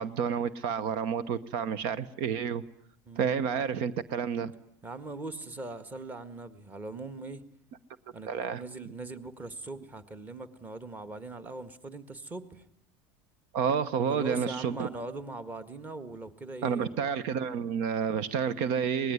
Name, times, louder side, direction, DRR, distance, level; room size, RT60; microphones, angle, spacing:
voice 1, 0.0-2.6 3.2-4.5 8.2-8.6 13.5-14.9 16.6-19.1, right 7 dB, 65° right, 16 dB, 1.0 m, -30 dB
voice 2, 3.1-3.4 4.8-7.4 8.1-12.6 14.1-17.0, right 2 dB, 20° right, 11 dB, 1.7 m, -41 dB
25.0 x 20.0 x 9.6 m, 0.72 s
supercardioid pair, 145°, 9 cm